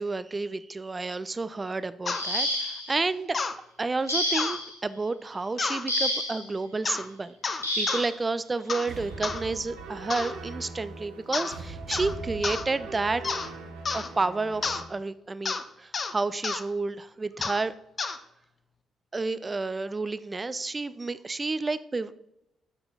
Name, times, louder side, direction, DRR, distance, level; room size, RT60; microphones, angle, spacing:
voice 1, 0.0-3.4 3.8-13.4 13.9-17.7 19.1-22.1, right 3 dB, 25° right, 15 dB, 0.3 m, -31 dB
sound 1, 2.1-3.0 4.1-4.7 5.9-6.5 7.6-8.1 9.3-9.4 10.0-10.2, left 1 dB, 90° left, 0.6 m, -29 dB
sound 2, 2.1-2.2 3.3-3.6 4.3-4.6 5.6-5.8 6.8-7.1 7.4-8.1 8.7-8.9 9.2-9.4 10.1-10.4 11.3-11.6 11.9-12.1 12.4-12.6 13.2-13.5 13.9-14.1 14.6-14.8 15.5-15.6 15.9-16.1 16.4-16.6 17.4-17.6 18.0-18.2, left 4 dB, 40° left, 0.5 m, -30 dB
sound 3, 8.9-14.8, right 4 dB, 65° right, 0.6 m, -40 dB
6.6 x 4.4 x 4.0 m, 0.83 s
figure-of-eight pair, 40°, 0 cm